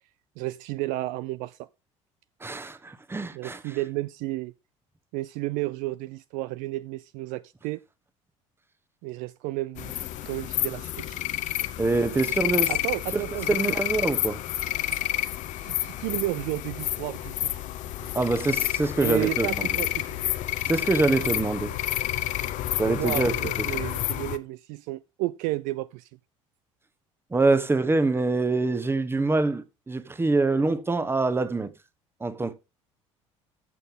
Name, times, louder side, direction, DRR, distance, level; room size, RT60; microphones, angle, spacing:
voice 1, 0.4-1.7 3.3-4.5 5.1-7.8 9.0-10.0 10.2-11.2 11.6-11.7 12.7-13.6 15.6-17.5 18.0-18.2 19.0-20.2 22.9-26.1, right 18 dB, 50° right, 0.4 m, -32 dB
voice 2, 2.4-3.6 11.8-12.7 13.1-14.4 18.1-19.7 20.7-21.8 22.8-23.7 27.3-31.7 32.2-32.5, right 3 dB, 15° right, 1.1 m, -25 dB
sound 1, 9.8-24.4, left 14 dB, 45° left, 0.9 m, -29 dB
14.0 x 7.0 x 3.7 m
figure-of-eight pair, 60°, 17 cm